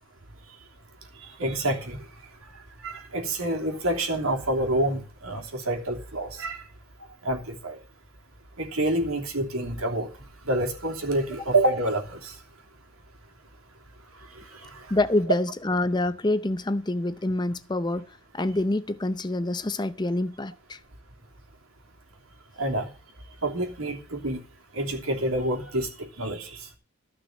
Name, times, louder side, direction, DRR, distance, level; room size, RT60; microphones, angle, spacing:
voice 1, 1.2-2.1 2.5-6.6 7.2-7.8 8.6-10.1 10.4-12.4 14.3-14.9 22.6-22.9 23.4-24.4 24.7-26.7, right 1 dB, 85° right, 3.1 m, -28 dB
voice 2, 14.9-20.8, left 2 dB, 20° left, 0.6 m, -26 dB
13.5 x 6.1 x 7.9 m
head